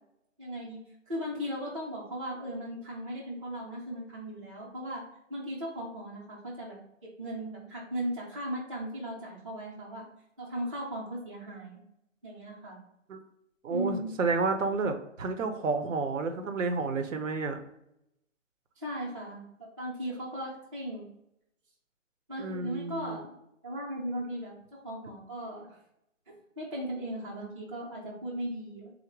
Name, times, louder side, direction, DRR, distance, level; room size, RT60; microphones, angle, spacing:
voice 1, 0.4-0.8 1.1-5.0 5.3-6.8 7.2-10.1 10.4-11.8 12.2-12.8 13.7-14.1 18.8-21.1 22.3-23.3 23.6-25.8 26.3-28.9, equal, 25° right, -6 dB, 0.6 m, -37 dB
voice 2, 13.6-17.6 22.4-23.2, right 4 dB, 80° right, 7 dB, 0.8 m, -30 dB
4.0 x 2.1 x 4.5 m, 0.81 s
hypercardioid pair, 175°, 38 cm